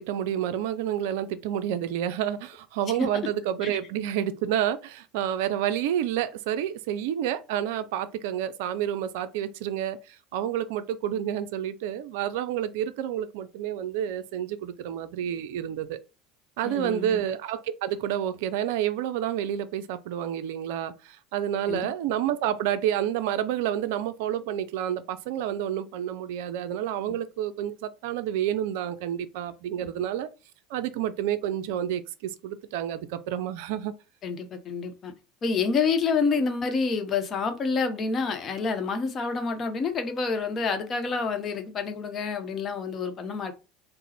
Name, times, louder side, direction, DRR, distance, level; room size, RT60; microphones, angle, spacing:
voice 1, 0.0-16.0 16.6-30.3 30.7-33.9, right 10 dB, 65° right, 0.3 m, -29 dB
voice 2, 16.6-17.2 21.7-21.9 29.8-29.9 34.2-35.1 35.4-43.5, left 5 dB, 35° left, 0.8 m, -28 dB
3.8 x 2.0 x 4.1 m
hypercardioid pair, 75°, 0 cm